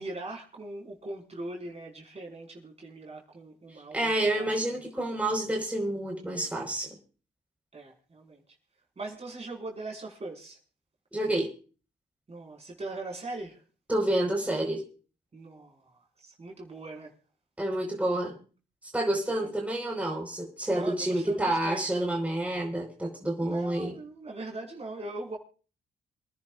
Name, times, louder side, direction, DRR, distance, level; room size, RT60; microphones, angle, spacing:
voice 1, 0.0-4.1 4.4-4.5 7.7-8.4 9.0-10.6 12.3-13.6 15.3-17.1 19.4-19.5 20.7-22.0 23.4-25.4, right 2 dB, 40° right, 5.3 m, -41 dB
voice 2, 3.9-6.9 11.1-11.5 13.9-14.8 17.6-18.4 18.9-23.9, right 1 dB, 10° right, 4.7 m, -29 dB
27.5 x 10.5 x 2.5 m
cardioid pair, 65°, 17 cm